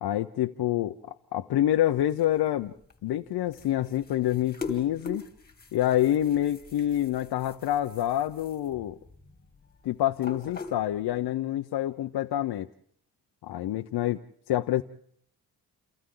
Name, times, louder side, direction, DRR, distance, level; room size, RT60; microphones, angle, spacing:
voice 1, 0.0-2.7 3.0-5.2 5.7-9.0 9.8-12.7 13.4-14.2 14.5-14.8, left 12 dB, 75° left, 5 dB, 0.8 m, -27 dB
sound 1, 1.7-11.3, left 4 dB, 25° left, 2.8 m, -44 dB
29.0 x 28.5 x 3.9 m, 0.65 s
cardioid pair, 120°, 39 cm